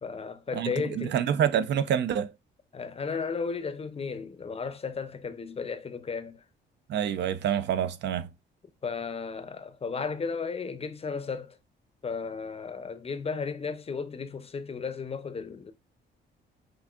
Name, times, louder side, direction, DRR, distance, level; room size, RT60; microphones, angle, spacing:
voice 1, 0.0-1.2 2.7-6.4 8.8-11.6 12.0-15.7, left 5 dB, 30° left, 0.6 m, -34 dB
voice 2, 0.5-2.3 6.9-8.3, right 9 dB, 60° right, 0.4 m, -27 dB
6.0 x 2.5 x 2.3 m
cardioid pair, 90°, 20 cm